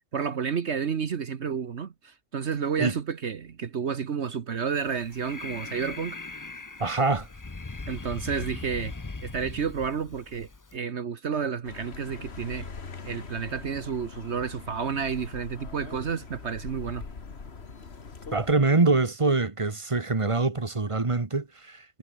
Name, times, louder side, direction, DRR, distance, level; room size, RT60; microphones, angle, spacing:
voice 1, 0.1-6.2 7.9-8.9 9.2-12.7 13.0-17.0, right 6 dB, 60° right, 1.4 m, -31 dB
Breathing, 4.8-10.8, left 3 dB, 20° left, 0.6 m, -40 dB
voice 2, 6.8-7.3 18.3-22.0, right 3 dB, 25° right, 1.3 m, -24 dB
Accelerating revving vroom, 11.6-18.5, left 4 dB, 55° left, 2.1 m, -42 dB
omnidirectional pair, 1.3 m